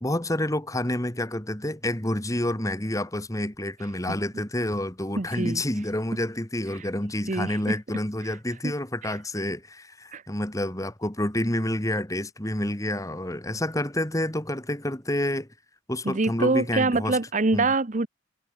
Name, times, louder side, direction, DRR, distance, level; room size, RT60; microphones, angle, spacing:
voice 1, 0.0-15.5 15.9-17.2 17.5-17.7, left 1 dB, 15° left, 2.2 m, -28 dB
voice 2, 5.2-5.6 7.3-7.7 8.6-8.7 9.0-9.1 10.1-10.2 16.0-18.1, right 3 dB, 40° right, 0.9 m, -25 dB
head